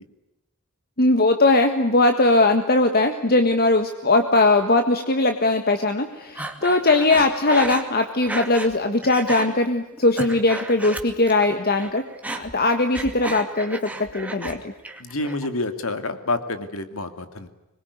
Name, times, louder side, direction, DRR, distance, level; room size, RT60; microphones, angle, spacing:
voice 1, 1.0-12.0 12.3-14.6, left 2 dB, 45° left, 6 dB, 1.6 m, -20 dB
Breathing, 6.4-8.7 9.0-9.5 9.9-11.5 11.7-14.6 14.8-15.5, right 2 dB, 5° right, 2.4 m, -33 dB
voice 2, 15.0-17.5, left 2 dB, 70° left, 9 dB, 2.6 m, -28 dB
26.0 x 22.0 x 9.7 m, 0.97 s
head